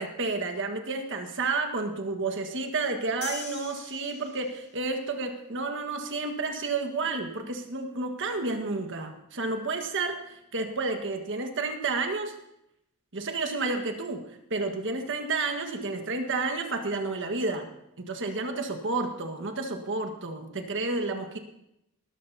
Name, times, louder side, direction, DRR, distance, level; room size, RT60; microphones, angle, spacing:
voice 1, 0.0-12.3 13.1-17.7 18.0-21.4, right 3 dB, 60° right, 5 dB, 1.6 m, -31 dB
sound 1, 3.2-4.8, left 6 dB, 50° left, 2.6 m, -41 dB
19.0 x 13.0 x 2.8 m, 0.82 s
head